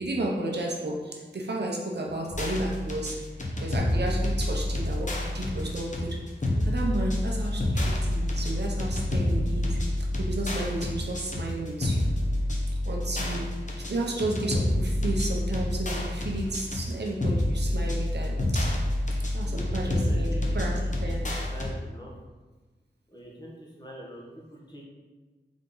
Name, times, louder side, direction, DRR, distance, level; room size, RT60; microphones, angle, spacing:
voice 1, 0.0-3.2 3.6-6.2 6.6-9.8 10.2-12.1 12.8-13.5 13.9-18.8 19.3-21.3, right 2 dB, 60° right, -1 dB, 0.8 m, -32 dB
sound 1, 2.3-21.7, left 1 dB, 40° left, 0.8 m, -28 dB
voice 2, 19.4-22.1 23.1-24.8, right 1 dB, 20° left, -4 dB, 1.2 m, -43 dB
3.9 x 3.6 x 3.8 m, 1.3 s
wide cardioid pair, 75°, 19 cm